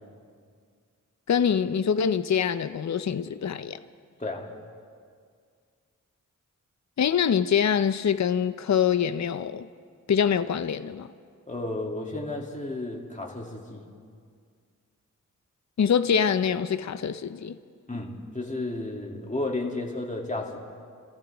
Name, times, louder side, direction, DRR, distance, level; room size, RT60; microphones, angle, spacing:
voice 1, 1.3-3.8 7.0-9.7 10.1-11.1 15.8-17.6, left 7 dB, 60° left, 0.5 m, -24 dB
voice 2, 11.5-13.8 17.9-20.6, left 2 dB, 25° left, 2.4 m, -32 dB
29.0 x 14.0 x 3.4 m
wide cardioid pair, 55°, 32 cm